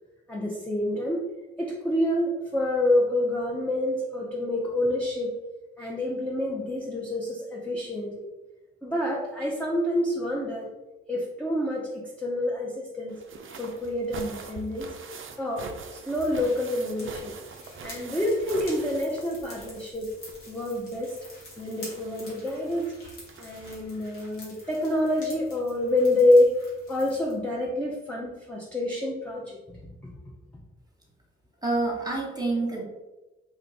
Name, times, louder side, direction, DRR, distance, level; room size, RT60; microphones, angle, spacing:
voice 1, 0.3-1.2 1.6-5.4 5.8-8.3 8.8-10.7 11.1-13.2 13.6-14.9 15.4-17.3 17.8-20.1 20.5-21.2 21.6-22.9 23.4-26.6 26.9-30.1 30.5-30.6, left 1 dB, 5° left, -4 dB, 0.7 m, -27 dB
sound 1, 13.1-19.9 20.1-24.1 25.2-25.3 25.6-25.7, right 5 dB, 40° right, 0.5 m, -44 dB
sound 2, 16.1-27.3, left 1 dB, 75° left, 1.3 m, -48 dB
voice 2, 31.6-32.8, right 2 dB, 10° right, -1 dB, 1.3 m, -27 dB
3.0 x 2.4 x 3.4 m, 1.1 s
hypercardioid pair, 40°, 31 cm